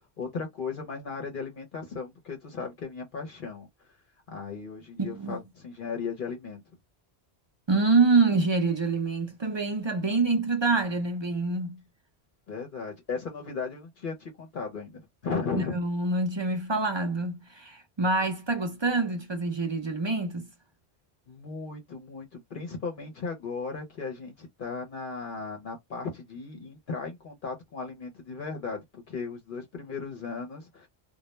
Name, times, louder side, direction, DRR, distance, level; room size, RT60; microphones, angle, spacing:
voice 1, 0.0-3.9 4.3-6.6 12.5-15.8 21.3-30.9, left 4 dB, 55° left, 0.8 m, -36 dB
voice 2, 5.0-5.4 7.7-11.8 15.5-20.5, right 3 dB, 40° right, 0.4 m, -26 dB
2.2 x 2.1 x 3.0 m
omnidirectional pair, 1.1 m